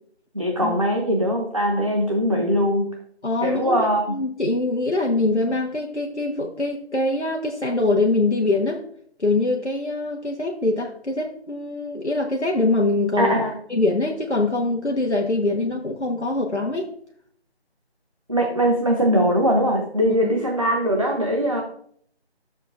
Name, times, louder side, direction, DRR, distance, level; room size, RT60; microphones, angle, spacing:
voice 1, 0.3-2.9 3.4-4.0 13.2-13.5 18.3-21.6, equal, 30° right, 0 dB, 0.7 m, -21 dB
voice 2, 3.2-8.8 9.2-13.3 13.7-16.9 20.2-20.3, left 2 dB, 90° left, 0 dB, 1.2 m, -23 dB
11.5 x 6.9 x 2.5 m, 0.63 s
figure-of-eight pair, 165°, 33 cm